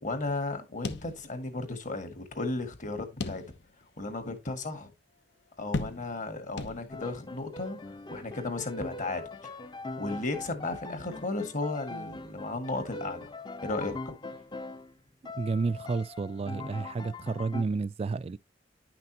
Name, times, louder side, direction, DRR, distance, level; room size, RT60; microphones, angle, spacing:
voice 1, 0.0-3.4 4.0-4.9 5.6-7.8 8.1-9.6 10.0-13.3 13.6-14.2, left 2 dB, 45° left, 1.8 m, -34 dB
sound 1, 0.8-1.7 2.0-2.1 3.2-3.9 4.4-4.5 5.7-6.3 6.6-7.2, left 3 dB, 75° left, 0.9 m, -36 dB
Piano, 6.9-15.0 15.2-17.6, left 2 dB, 25° left, 0.6 m, -42 dB
voice 2, 15.3-18.4, right 4 dB, 35° right, 0.3 m, -31 dB
10.5 x 5.9 x 2.9 m
head